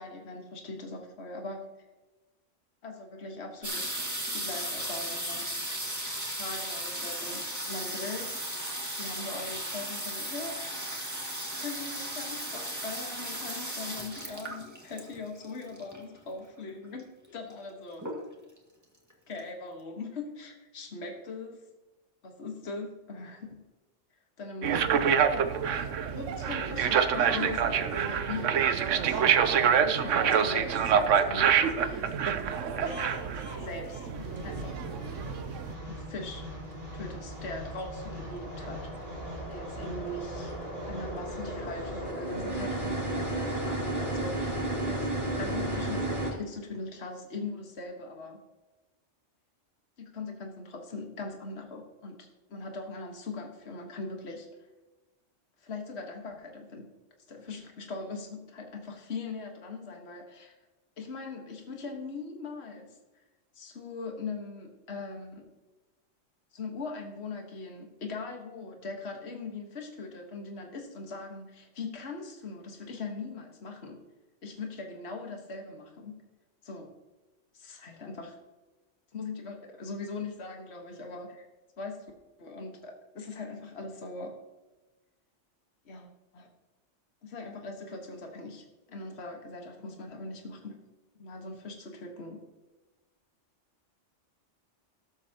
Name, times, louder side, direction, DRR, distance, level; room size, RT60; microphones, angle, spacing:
voice 1, 0.0-1.7 2.8-3.9 4.3-5.6 6.3-8.4 8.9-10.6 11.6-18.1 19.3-21.6 22.2-23.6 24.4-25.3 26.1-28.5 28.8-29.2 29.5-32.1 32.5-33.0 33.6-34.8 35.9-36.4 36.9-39.2 39.5-40.5 40.9-45.1 45.4-48.4 50.0-54.5 55.6-56.9 57.3-60.6 61.0-62.9 63.5-65.5 66.5-74.0 74.4-76.2 76.6-76.9 77.5-78.4 79.1-81.4 81.8-82.0 82.4-84.3 85.8-86.5 87.2-90.8 91.2-92.4, left 3 dB, 60° left, 2 dB, 1.7 m, -40 dB
sound 1, 3.6-16.2 17.0-17.1 17.3-17.7 18.0-18.6 19.1-19.2 19.4-19.5, right 1 dB, 15° right, 1.9 m, -36 dB
sound 2, 24.6-35.7, right 7 dB, 80° right, 1.1 m, -26 dB
sound 3, 32.9-46.3, right 1 dB, 40° right, 3.0 m, -35 dB
19.0 x 8.0 x 2.9 m, 1.1 s
omnidirectional pair, 1.3 m